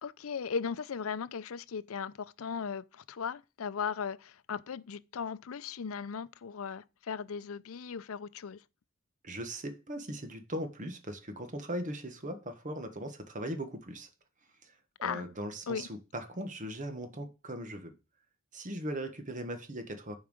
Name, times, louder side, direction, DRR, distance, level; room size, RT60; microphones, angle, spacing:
voice 1, 0.0-8.6 15.0-15.3 15.7-15.9, left 6 dB, 75° left, 0.5 m, -37 dB
voice 2, 9.2-14.1 14.6-17.9 18.5-20.2, right 1 dB, 40° right, 1.5 m, -39 dB
7.2 x 4.7 x 6.4 m
head